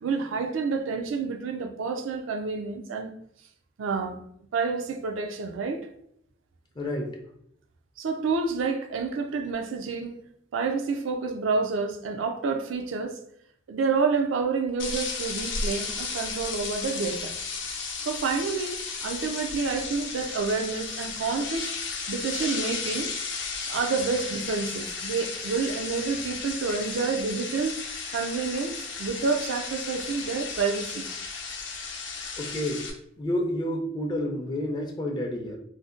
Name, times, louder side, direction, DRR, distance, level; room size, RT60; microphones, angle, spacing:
voice 1, 0.0-3.1 3.8-4.2 4.5-5.9 8.0-10.2 10.5-13.2 13.7-17.4 18.0-21.7 22.1-23.1 23.7-27.8 28.1-31.1, right 4 dB, 80° right, 0.4 m, -29 dB
voice 2, 6.8-7.2 32.4-32.9 33.2-35.6, left 1 dB, 25° left, 0.4 m, -29 dB
sound 1, 14.8-32.9, left 4 dB, 65° left, 0.6 m, -34 dB
2.6 x 2.1 x 3.6 m
head